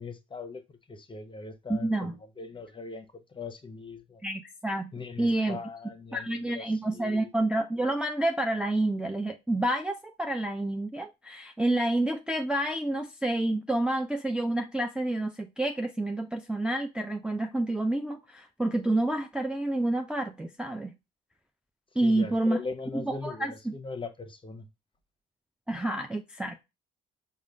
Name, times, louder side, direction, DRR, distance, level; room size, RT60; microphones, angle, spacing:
voice 1, 0.0-4.2 4.9-7.3 22.0-24.7, left 4 dB, 25° left, 0.8 m, -40 dB
voice 2, 1.7-2.2 4.2-4.9 5.2-5.6 6.1-20.9 22.0-22.6 23.0-23.7 25.7-26.6, right 1 dB, 5° right, 0.4 m, -29 dB
4.9 x 2.3 x 3.1 m
hypercardioid pair, 55°, 21 cm